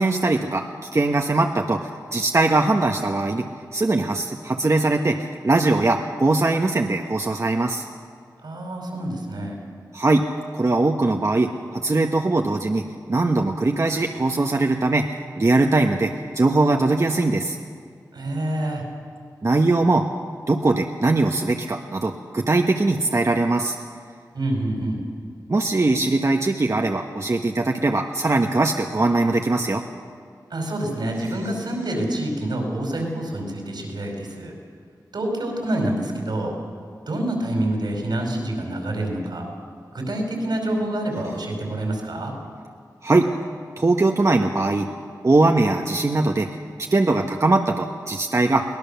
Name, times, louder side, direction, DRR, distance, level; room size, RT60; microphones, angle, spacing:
voice 1, 0.0-3.4 3.7-7.9 9.9-10.3 10.5-17.6 19.4-20.0 20.5-23.8 25.5-29.8 43.0-43.3 43.8-44.9 45.2-46.5 46.9-48.6, right 2 dB, 40° right, 3 dB, 1.2 m, -21 dB
voice 2, 8.4-9.6 18.1-18.9 24.3-25.0 30.5-34.5 35.1-36.5 37.1-39.4 39.9-42.3, right 1 dB, 80° right, 1 dB, 5.1 m, -27 dB
23.0 x 18.0 x 7.0 m, 2.1 s
cardioid pair, 55°, 7 cm